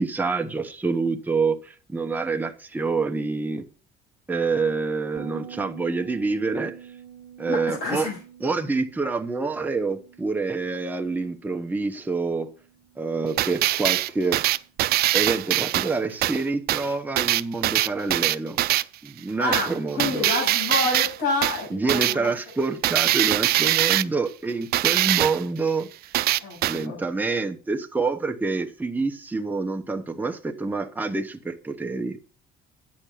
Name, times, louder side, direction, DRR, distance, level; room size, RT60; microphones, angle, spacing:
voice 1, 0.0-3.6 4.3-6.7 7.4-8.1 8.4-12.5 13.0-14.4 15.1-18.6 19.0-20.3 21.7-25.9 26.6-32.2, right 4 dB, 10° right, 1.0 m, -27 dB
Bass guitar, 5.2-14.5, right 10 dB, 45° right, 1.6 m, -47 dB
voice 2, 7.5-8.2 19.4-22.3 26.4-27.0, left 3 dB, 65° left, 7.4 m, -28 dB
sound 1, 13.4-16.4 16.7-16.9 17.2-18.8 19.5-19.7 20.0-21.2 21.4-21.6 21.9-22.1 22.8-24.0 24.7-25.4 26.1-26.8, right 16 dB, 70° right, 0.5 m, -22 dB
9.8 x 7.4 x 5.6 m
cardioid pair, 110°, 17 cm